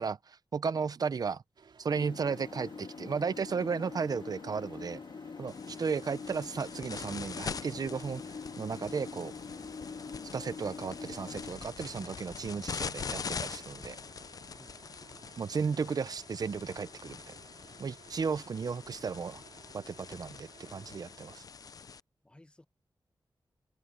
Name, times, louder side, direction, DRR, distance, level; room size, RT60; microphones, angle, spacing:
voice 1, 0.0-1.4 1.8-5.0 5.4-8.2 8.6-9.3 10.3-14.0 15.4-17.3 17.8-19.4 19.7-21.4, right 5 dB, 50° right, 0.6 m, -34 dB
sound 1, 1.6-21.5, right 5 dB, 75° right, 4.7 m, -58 dB
sound 2, 1.9-11.5, left 5 dB, 65° left, 2.6 m, -44 dB
sound 3, 5.5-22.0, left 5 dB, 50° left, 0.5 m, -44 dB
voice 2, 5.5-5.9 14.6-14.8 20.9-21.1 22.2-22.7, left 1 dB, 10° left, 1.0 m, -59 dB
open air
wide cardioid pair, 175°, 8 cm